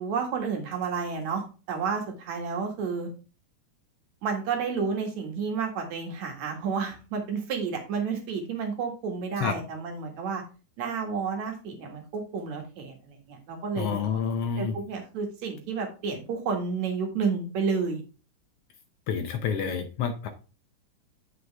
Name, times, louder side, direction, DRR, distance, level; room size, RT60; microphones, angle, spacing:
voice 1, 0.0-3.1 4.2-10.4 10.8-14.0 14.6-18.0, right 5 dB, 65° right, 3 dB, 2.9 m, -31 dB
voice 2, 13.8-14.7 19.1-20.3, left 6 dB, 80° left, 7 dB, 1.3 m, -28 dB
7.9 x 6.2 x 3.3 m, 0.34 s
omnidirectional pair, 3.6 m